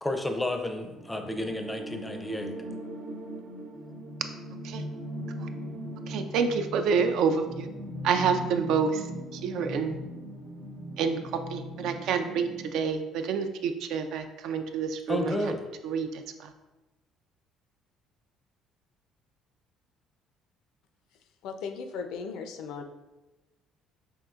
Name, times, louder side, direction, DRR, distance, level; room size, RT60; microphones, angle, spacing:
voice 1, 0.0-2.5 15.1-15.6, left 1 dB, 10° left, 5 dB, 0.4 m, -31 dB
sound 1, 0.8-12.8, equal, 90° right, 1.0 m, -39 dB
voice 2, 6.1-7.7 8.0-9.1 9.3-10.0 11.0-15.5 15.8-16.5, right 6 dB, 70° right, 7 dB, 0.4 m, -28 dB
voice 3, 21.4-22.8, left 5 dB, 75° left, 6 dB, 0.5 m, -37 dB
5.3 x 2.8 x 2.4 m, 1.1 s
cardioid pair, 115°, 0 cm